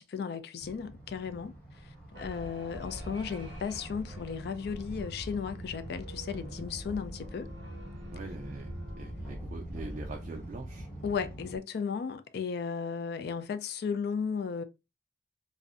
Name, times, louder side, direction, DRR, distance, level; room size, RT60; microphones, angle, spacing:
voice 1, 0.0-7.5 11.0-14.6, left 6 dB, 60° left, 0.3 m, -35 dB
sound 1, 0.6-11.6, equal, 5° left, 1.0 m, -43 dB
sound 2, 2.1-10.9, left 1 dB, 75° right, 0.6 m, -53 dB
voice 2, 8.1-10.9, right 3 dB, 40° right, 0.3 m, -43 dB
2.5 x 2.0 x 2.3 m
head